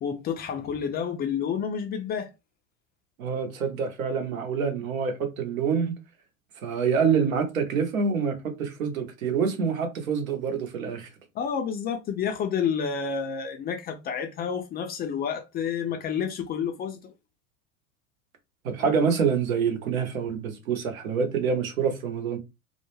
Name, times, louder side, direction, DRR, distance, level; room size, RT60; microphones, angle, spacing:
voice 1, 0.0-2.3 11.3-17.1, left 7 dB, 25° left, 0.4 m, -29 dB
voice 2, 3.2-6.0 6.6-11.1 18.6-22.4, right 6 dB, 75° right, 0.9 m, -26 dB
2.3 x 2.1 x 3.0 m
hypercardioid pair, 80°, 41 cm